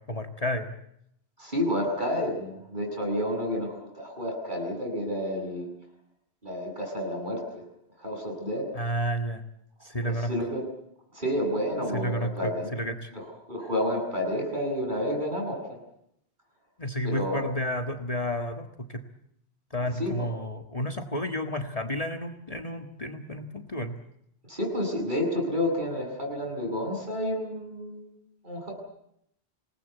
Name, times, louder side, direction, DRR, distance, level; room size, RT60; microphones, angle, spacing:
voice 1, 0.1-0.7 8.7-9.4 9.8-10.3 11.9-13.1 16.8-19.1 19.7-24.0, equal, 35° left, 5 dB, 1.8 m, -31 dB
voice 2, 1.4-5.7 6.4-7.6 8.0-8.7 10.0-10.6 11.1-12.7 13.1-15.8 17.0-17.4 20.0-20.3 24.5-28.1 28.4-28.7, left 1 dB, 45° right, 1 dB, 8.2 m, -30 dB
26.5 x 19.5 x 8.3 m, 0.75 s
omnidirectional pair, 1.1 m